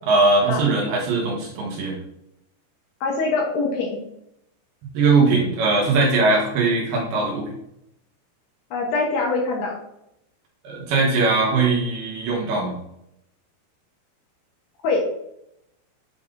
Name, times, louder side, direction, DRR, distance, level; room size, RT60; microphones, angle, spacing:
voice 1, 0.1-1.9 4.9-7.5 10.6-12.7, right 3 dB, 70° right, -2 dB, 2.8 m, -20 dB
voice 2, 3.0-4.0 8.7-9.8 14.8-15.0, left 3 dB, 70° left, -1 dB, 2.7 m, -23 dB
8.4 x 5.6 x 2.6 m, 0.79 s
omnidirectional pair, 5.4 m